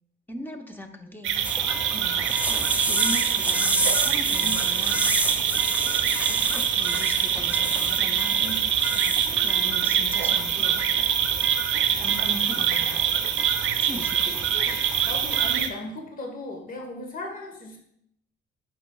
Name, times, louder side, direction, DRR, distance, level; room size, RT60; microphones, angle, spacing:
voice 1, 0.3-1.4 2.9-5.1 6.3-6.4 6.6-8.4 9.4-10.8 12.0-13.0 13.8-14.4, equal, 10° left, 4 dB, 0.9 m, -38 dB
sound 1, 1.2-15.7, right 8 dB, 80° right, 0.7 m, -24 dB
sound 2, 1.4-15.6, right 2 dB, 5° right, 0.4 m, -31 dB
voice 2, 8.4-9.1 14.5-14.8 15.0-17.8, left 1 dB, 45° left, 2 dB, 1.2 m, -37 dB
11.0 x 5.2 x 2.3 m, 0.72 s
cardioid pair, 90°, 20 cm